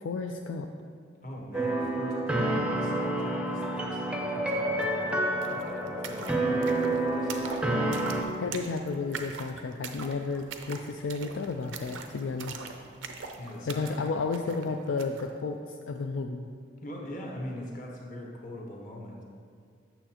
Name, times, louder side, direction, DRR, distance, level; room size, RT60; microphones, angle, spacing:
voice 1, 0.0-0.7 8.4-12.6 13.7-16.5, left 4 dB, 70° left, 4 dB, 0.3 m, -32 dB
voice 2, 1.2-5.0 5.5-7.6 13.4-14.1 14.4-14.7 16.8-19.2, equal, 45° left, -1 dB, 1.1 m, -42 dB
sound 1, 1.5-8.2, right 1 dB, 5° right, 0.5 m, -29 dB
sound 2, 4.8-4.9 5.1-15.3, right 5 dB, 80° right, 0.6 m, -43 dB
8.9 x 6.8 x 2.9 m, 2.2 s
head